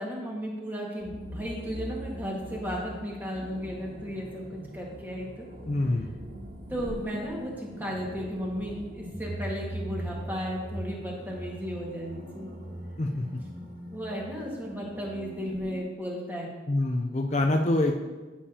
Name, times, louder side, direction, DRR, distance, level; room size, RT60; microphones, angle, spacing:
voice 1, 0.0-5.5 6.7-12.5 13.9-16.5, equal, 10° right, -3 dB, 1.7 m, -35 dB
sound 1, 1.0-15.8, equal, 55° right, 1.8 m, -41 dB
voice 2, 5.7-6.1 13.0-13.3 16.7-18.0, left 2 dB, 40° left, 3 dB, 0.5 m, -25 dB
13.5 x 7.2 x 2.9 m, 1.3 s
head